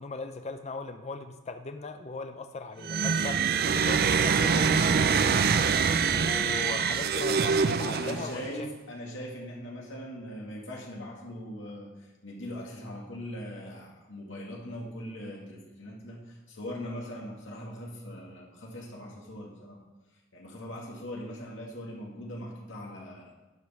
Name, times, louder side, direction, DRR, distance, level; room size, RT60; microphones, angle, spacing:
voice 1, 0.0-8.5, left 3 dB, 35° left, 7 dB, 0.5 m, -39 dB
sound 1, 2.8-8.5, right 6 dB, 50° right, 0.5 m, -25 dB
voice 2, 7.9-19.8 20.3-23.3, equal, 70° left, -2 dB, 2.2 m, -41 dB
11.0 x 5.3 x 5.7 m, 1.2 s
head